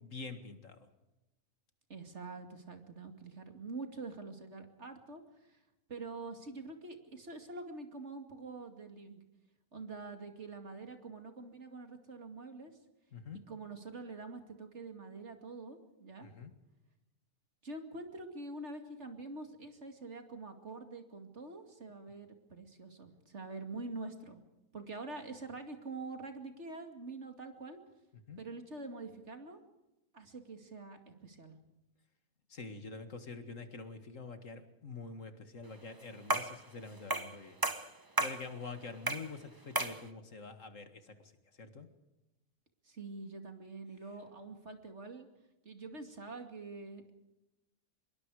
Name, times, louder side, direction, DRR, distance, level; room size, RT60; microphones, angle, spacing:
voice 1, 0.0-0.9 13.1-13.4 16.2-16.5 28.3-28.4 32.5-37.6 38.2-41.3 41.6-41.9, left 4 dB, 55° left, 8 dB, 2.2 m, -46 dB
voice 2, 1.9-5.6 5.9-9.2 9.7-12.7 13.5-16.3 17.6-24.4 24.7-27.8 28.4-29.6 30.1-31.6 42.8-45.3 45.6-47.1, right 3 dB, 50° right, 6 dB, 2.7 m, -46 dB
sound 1, 36.3-36.6 37.1-37.4 37.6-38.4 39.1-39.3 39.8-40.0, right 2 dB, 15° right, 1.0 m, -33 dB
25.0 x 22.5 x 4.9 m, 0.98 s
omnidirectional pair, 1.6 m